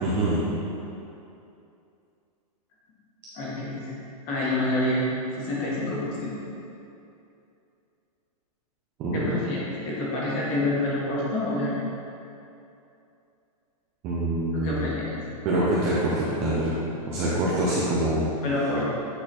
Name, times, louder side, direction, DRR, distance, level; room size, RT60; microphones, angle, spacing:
voice 1, 0.0-0.5 9.0-9.4 14.0-15.0 15.4-16.7 17.1-18.3, right 1 dB, 10° right, -8 dB, 0.4 m, -25 dB
voice 2, 3.3-3.8 4.2-5.0 5.4-6.3 9.1-11.8 14.5-15.2 18.4-18.9, left 1 dB, 25° left, -6 dB, 1.4 m, -27 dB
8.9 x 4.1 x 4.2 m, 2.7 s
supercardioid pair, 180°, 19 cm